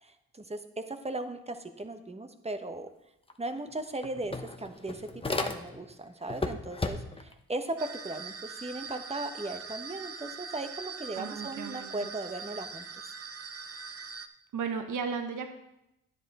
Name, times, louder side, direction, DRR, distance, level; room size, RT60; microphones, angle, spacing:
voice 1, 0.0-2.9 3.4-5.1 5.4-13.1, right 2 dB, 15° right, 8 dB, 1.1 m, -37 dB
sound 1, 3.3-3.4 3.7-5.9 6.3-7.3, left 2 dB, 15° left, 1.0 m, -34 dB
sound 2, 7.8-14.3, right 5 dB, 40° right, 0.8 m, -42 dB
voice 2, 11.1-12.1 14.5-15.5, right 6 dB, 55° right, 6 dB, 1.2 m, -35 dB
10.0 x 7.8 x 4.2 m, 0.85 s
supercardioid pair, 60°, 36 cm